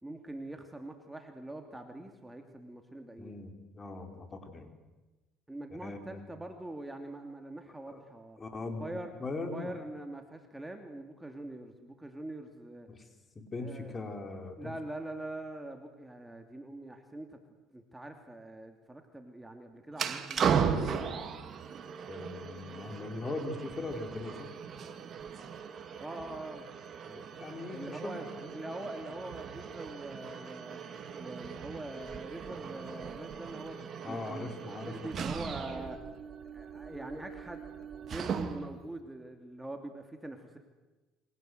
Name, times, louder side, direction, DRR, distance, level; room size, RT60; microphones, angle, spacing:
voice 1, 0.0-3.4 5.5-8.4 8.7-9.1 9.4-12.9 13.5-14.0 14.6-17.4 17.7-21.0 26.0-26.6 27.7-28.2 28.5-30.8 31.2-34.6 34.8-36.0 36.5-37.6 37.9-40.6, right 1 dB, 10° right, 4 dB, 2.8 m, -43 dB
voice 2, 3.2-4.7 5.8-6.2 7.9-8.0 8.4-8.9 9.2-9.7 12.9-13.0 13.3-14.7 22.1-24.5 27.1-28.6 34.0-35.2, left 3 dB, 25° left, 5 dB, 4.7 m, -40 dB
sound 1, 19.9-38.8, right 7 dB, 45° right, 2.7 m, -37 dB
28.5 x 24.5 x 8.1 m, 1.1 s
supercardioid pair, 100°, 0 cm